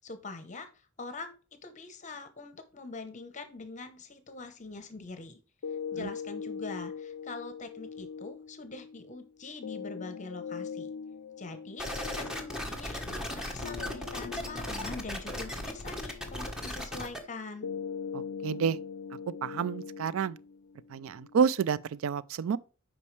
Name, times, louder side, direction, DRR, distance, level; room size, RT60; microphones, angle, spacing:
voice 1, 0.0-1.4 1.6-5.4 5.9-10.9 11.4-17.7, left 3 dB, 35° left, 0.8 m, -44 dB
sound 1, 5.6-21.6, left 6 dB, 80° left, 0.4 m, -42 dB
sound 2, 11.8-17.2, left 1 dB, 5° right, 1.1 m, -37 dB
voice 2, 18.1-18.8 19.4-20.4 20.9-22.6, right 6 dB, 75° right, 0.4 m, -29 dB
8.4 x 5.3 x 3.2 m
head